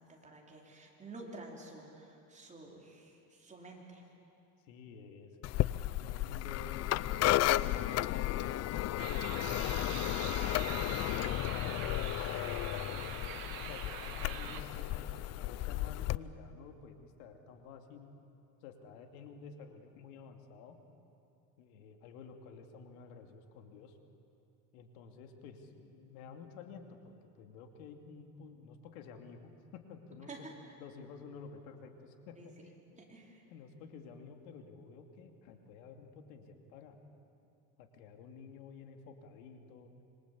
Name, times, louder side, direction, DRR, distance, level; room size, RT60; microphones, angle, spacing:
voice 1, 0.0-4.0 30.3-30.7 32.4-32.5 33.0-33.4, right 2 dB, 15° right, -1 dB, 4.6 m, -50 dB
voice 2, 4.7-9.9 10.4-13.1 13.6-18.1 18.6-20.8 21.6-24.0 24.7-30.3 30.8-33.0 33.5-37.0 37.8-39.9, left 5 dB, 85° left, 5 dB, 2.8 m, -52 dB
sound 1, 5.4-16.2, left 15 dB, 40° left, 0.5 m, -33 dB
sound 2, 9.0-14.6, right 9 dB, 55° right, 2.4 m, -44 dB
26.5 x 25.0 x 8.6 m, 2.8 s
cardioid pair, 135°, 41 cm